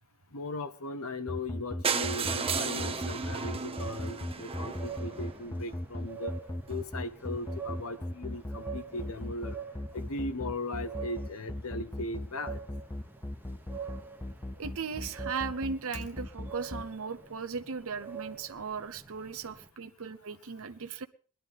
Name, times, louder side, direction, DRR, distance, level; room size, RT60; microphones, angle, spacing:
voice 1, 0.3-6.3 6.7-9.6 9.9-12.6, left 2 dB, 75° left, 10 dB, 1.2 m, -38 dB
sound 1, 1.3-16.8, left 1 dB, 15° left, 0.6 m, -37 dB
sound 2, 1.8-5.7 6.4-6.5 6.7-6.8 7.1-7.2 7.4-7.5, right 5 dB, 25° right, 0.9 m, -34 dB
sound 3, 2.2-19.7, right 6 dB, 10° right, 1.2 m, -46 dB
voice 2, 14.6-21.1, right 5 dB, 65° right, 9 dB, 0.8 m, -37 dB
20.5 x 12.0 x 3.6 m, 0.41 s
head